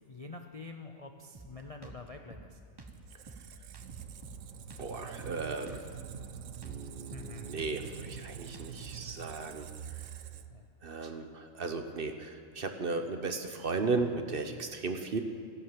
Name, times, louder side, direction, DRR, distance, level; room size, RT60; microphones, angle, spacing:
voice 1, 0.1-2.6 7.1-7.5 10.5-10.6, left 3 dB, 40° left, 4 dB, 0.5 m, -46 dB
Drum kit, 1.3-9.0, right 2 dB, 20° right, 1.0 m, -51 dB
Squeak, 2.9-10.7, right 9 dB, 70° right, 1.0 m, -45 dB
voice 2, 4.8-5.9 6.6-9.7 10.8-15.2, right 3 dB, 45° right, 7 dB, 1.0 m, -35 dB
14.5 x 11.0 x 7.4 m, 2.6 s
omnidirectional pair, 1.4 m